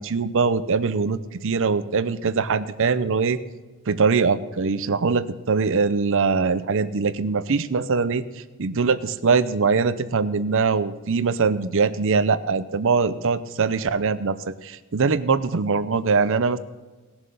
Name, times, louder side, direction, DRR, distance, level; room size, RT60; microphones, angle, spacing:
voice 1, 0.0-3.4 3.9-16.6, right 4 dB, 65° right, 14 dB, 0.7 m, -22 dB
18.5 x 7.1 x 5.4 m, 1.3 s
head